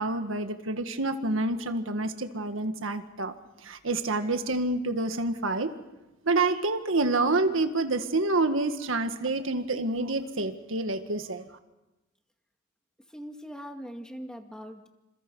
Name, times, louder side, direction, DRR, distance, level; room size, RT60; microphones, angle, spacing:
voice 1, 0.0-3.3 3.6-5.7 6.2-11.5, right 2 dB, 70° right, 8 dB, 1.7 m, -28 dB
voice 2, 13.1-14.9, equal, 5° left, 4 dB, 2.1 m, -41 dB
28.5 x 27.5 x 5.5 m, 1.0 s
head